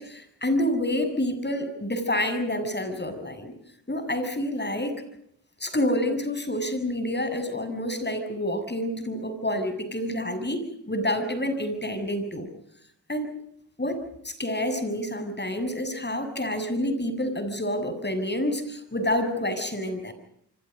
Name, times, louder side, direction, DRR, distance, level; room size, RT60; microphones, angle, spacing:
voice 1, 0.0-3.5 3.9-5.0 5.6-12.5 13.1-13.3 13.8-20.1, left 1 dB, 25° left, 9 dB, 7.2 m, -28 dB
27.5 x 25.5 x 5.3 m, 0.71 s
cardioid pair, 50°, 40 cm